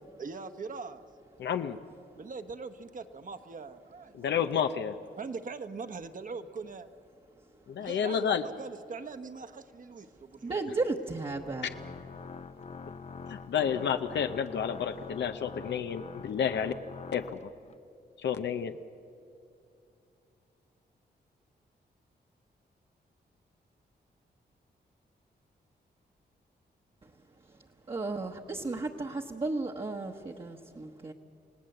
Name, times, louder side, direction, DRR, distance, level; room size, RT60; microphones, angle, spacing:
voice 1, 0.2-1.1 2.1-4.3 5.2-6.9 7.8-10.7, right 4 dB, 50° right, 9 dB, 1.2 m, -41 dB
voice 2, 1.4-1.8 4.1-5.0 7.7-8.5 13.3-16.7 17.1-17.5 18.2-18.7, left 8 dB, 85° left, 8 dB, 0.8 m, -30 dB
voice 3, 10.4-11.7 27.9-31.1, right 3 dB, 30° right, 0 dB, 1.1 m, -34 dB
Organ, 11.2-17.8, left 5 dB, 40° left, 0.7 m, -45 dB
29.0 x 18.0 x 7.9 m, 2.6 s
wide cardioid pair, 105°, 18 cm